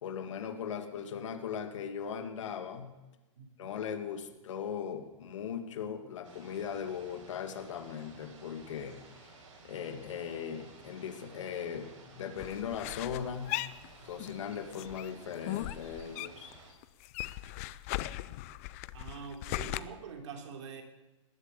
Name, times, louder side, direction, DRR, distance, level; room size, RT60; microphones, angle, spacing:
voice 1, 0.0-2.9 3.6-9.0 9.6-13.5 14.0-16.5, left 7 dB, 70° left, 6 dB, 2.2 m, -39 dB
voice 2, 3.4-3.7 18.9-20.8, right 5 dB, 65° right, 3 dB, 3.3 m, -45 dB
sound 1, 6.2-16.7, right 3 dB, 90° right, 6.3 m, -55 dB
sound 2, 12.4-14.4 14.7-16.6 16.8-19.8, left 17 dB, 30° left, 0.4 m, -38 dB
19.5 x 8.3 x 8.2 m, 1.1 s
hypercardioid pair, 165°, 17 cm